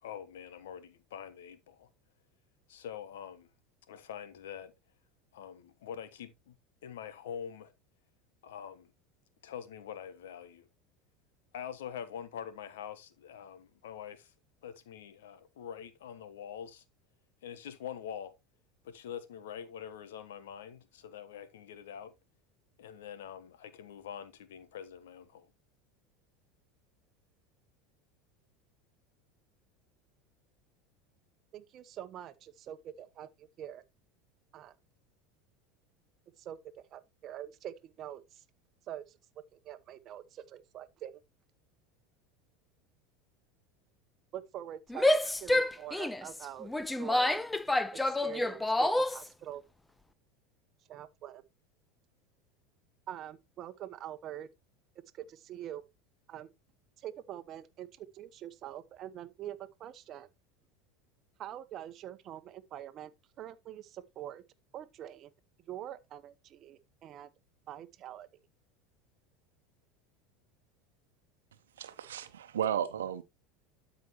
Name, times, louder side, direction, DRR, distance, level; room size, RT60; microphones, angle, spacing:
voice 1, 0.0-1.9 2.7-3.5 3.9-4.7 5.3-6.5 6.8-7.7 8.4-8.9 9.4-10.7 11.5-14.3 14.6-16.8 17.4-18.3 18.8-22.1 22.8-25.5, left 8 dB, 75° left, 1.1 m, -44 dB
voice 2, 31.5-33.8 34.5-34.7 36.4-38.4 38.9-39.2 39.6-41.2 44.3-46.7 47.0-47.4 48.0-49.6 50.9-51.4 53.1-54.5 55.1-55.8 56.3-56.5 57.0-60.3 61.4-63.1 63.4-64.4 64.7-65.3 65.7-67.3 67.7-68.3, right 11 dB, 45° right, 0.9 m, -45 dB
Female speech woman speaking / Yell, 44.9-49.3, left 1 dB, 10° left, 0.6 m, -28 dB
voice 3, 71.8-73.2, right 9 dB, 80° right, 1.0 m, -34 dB
12.5 x 5.1 x 3.0 m
hypercardioid pair, 80°, 0 cm